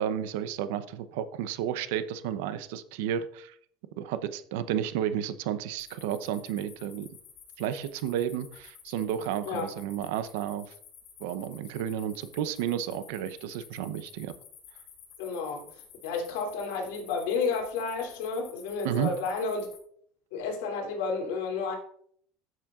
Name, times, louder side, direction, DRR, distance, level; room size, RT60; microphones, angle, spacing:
voice 1, 0.0-3.5 4.0-7.1 7.6-10.7 11.2-14.3 18.8-19.1, right 10 dB, 85° right, 12 dB, 0.7 m, -32 dB
sound 1, 5.8-19.8, left 7 dB, 50° left, 3.7 m, -52 dB
voice 2, 15.2-19.7 20.3-21.8, left 4 dB, 85° left, 1 dB, 2.9 m, -31 dB
12.5 x 7.4 x 2.4 m, 0.62 s
supercardioid pair, 130°, 0 cm